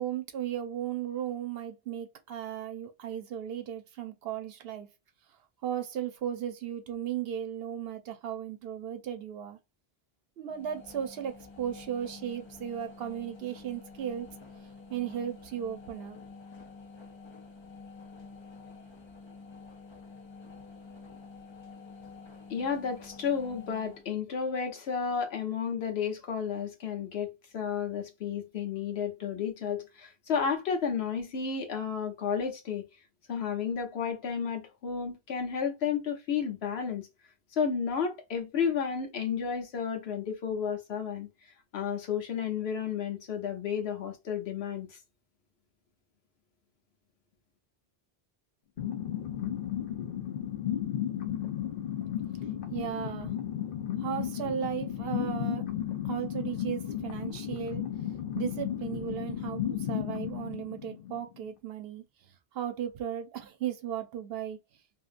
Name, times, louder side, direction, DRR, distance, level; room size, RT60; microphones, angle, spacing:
voice 1, 0.0-4.9 5.6-9.6 10.4-14.3 14.9-16.2 52.7-53.3 54.0-55.6 56.0-57.8 58.3-64.6, right 10 dB, 70° right, 0.8 m, -36 dB
sound 1, 10.5-24.1, left 4 dB, 40° left, 0.5 m, -49 dB
voice 2, 22.5-32.9 33.3-37.1 37.5-41.3 41.7-45.0, left 7 dB, 80° left, 1.1 m, -32 dB
sound 2, 48.8-61.4, left 11 dB, 60° left, 0.8 m, -34 dB
2.9 x 2.6 x 2.4 m
omnidirectional pair, 1.1 m